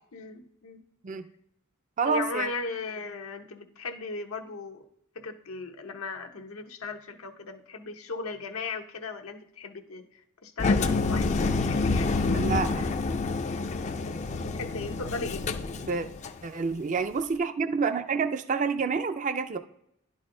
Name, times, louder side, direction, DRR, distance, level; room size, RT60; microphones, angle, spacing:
voice 1, 0.1-0.8 2.0-4.8 5.1-12.9 14.6-15.4, left 4 dB, 85° left, 5 dB, 0.8 m, -37 dB
voice 2, 2.0-2.5 12.3-12.7 15.8-16.1 16.4-19.6, right 5 dB, 35° right, 10 dB, 0.4 m, -28 dB
Engine, 10.6-16.4, left 3 dB, 35° left, 0.4 m, -28 dB
11.0 x 4.1 x 3.8 m, 0.77 s
head